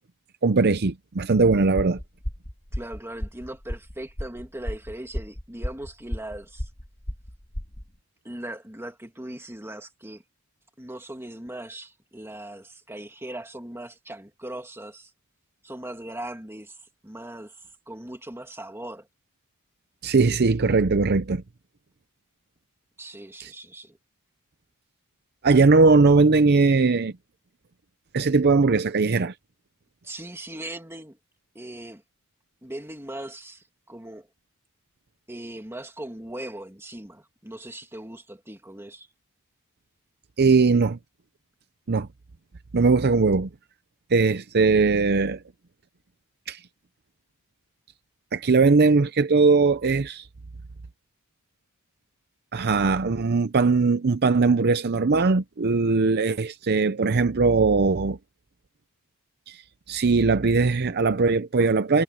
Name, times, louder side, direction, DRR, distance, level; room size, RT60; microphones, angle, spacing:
voice 1, 0.4-2.0 20.0-21.4 23.4-23.5 25.4-27.1 28.1-29.3 40.4-41.0 41.9-42.1 42.7-43.5 44.1-45.4 46.5-46.6 48.3-50.3 52.5-58.2 59.5-59.6 59.9-62.0, right 4 dB, 50° right, 0.6 m, -20 dB
sound 1, 1.8-7.9, equal, 30° left, 2.3 m, -34 dB
voice 2, 2.7-6.7 8.2-10.2 10.8-15.1 15.6-16.8 17.0-17.5 17.9-19.1 23.0-24.0 30.0-31.2 31.5-32.0 32.6-34.3 35.3-39.1, right 1 dB, 10° right, 2.1 m, -39 dB
head